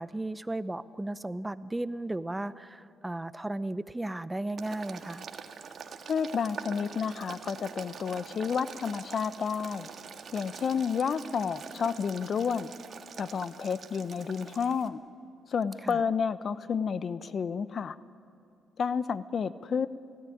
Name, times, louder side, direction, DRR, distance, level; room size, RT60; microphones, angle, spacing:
voice 1, 0.0-5.3 15.8-16.0, right 1 dB, 10° right, 15 dB, 0.7 m, -35 dB
Boiling, 4.6-14.9, right 6 dB, 55° right, 1.7 m, -44 dB
voice 2, 6.1-9.9 10.3-12.7 13.2-15.0 15.5-18.0 18.8-19.9, left 6 dB, 50° left, 14 dB, 0.8 m, -30 dB
29.0 x 16.5 x 10.0 m, 2.5 s
cardioid pair, 90°, 0 cm